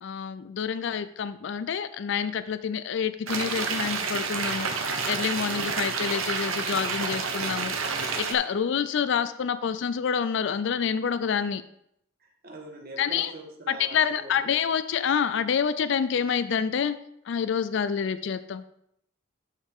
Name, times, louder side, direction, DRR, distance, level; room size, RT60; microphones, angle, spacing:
voice 1, 0.0-4.7 5.1-7.7 8.2-11.6 13.0-13.3 13.7-17.0 17.3-18.6, left 7 dB, 60° left, 13 dB, 0.4 m, -27 dB
sound 1, 3.3-8.3, right 5 dB, 85° right, 1.1 m, -29 dB
voice 2, 12.2-14.5, right 2 dB, 50° right, 2 dB, 1.5 m, -43 dB
12.0 x 4.9 x 3.6 m, 0.75 s
head